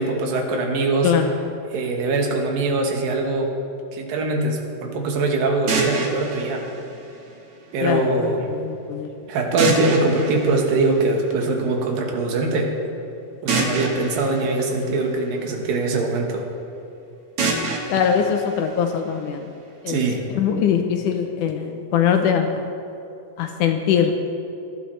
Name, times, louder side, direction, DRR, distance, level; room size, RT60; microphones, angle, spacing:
voice 1, 0.0-1.1 1.7-3.5 3.9-6.7 7.7-8.5 9.3-12.7 13.4-16.5 19.9-20.2, right 3 dB, 80° right, 2 dB, 3.0 m, -22 dB
voice 2, 1.0-1.4 7.8-9.1 17.9-19.5 19.8-20.0 20.3-22.7 23.4-24.2, left 7 dB, 75° left, 5 dB, 2.0 m, -22 dB
sound 1, 5.7-7.7 9.6-11.5 13.5-15.7 17.4-19.4, right 3 dB, 55° right, 1.7 m, -28 dB
18.0 x 12.0 x 3.2 m, 2.8 s
omnidirectional pair, 4.0 m